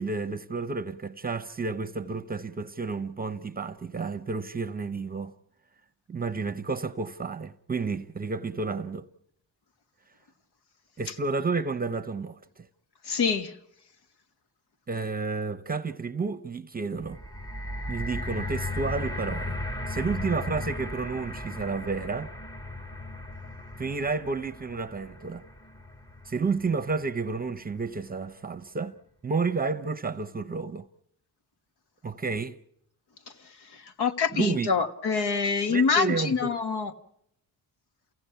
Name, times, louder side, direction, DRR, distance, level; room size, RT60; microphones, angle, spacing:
voice 1, 0.0-5.3 6.1-9.1 11.0-12.7 14.9-17.2 17.9-19.6 19.9-22.3 23.8-25.4 26.3-28.9 29.2-30.9 32.0-32.6 34.3-34.7 35.7-36.6, right 4 dB, 20° right, 0.8 m, -31 dB
voice 2, 13.1-13.5 34.0-36.9, left 5 dB, 70° left, 1.5 m, -25 dB
sound 1, 17.0-27.2 27.9-28.0, left 1 dB, 10° left, 1.0 m, -36 dB
28.5 x 17.0 x 5.7 m
cardioid pair, 95°, 41 cm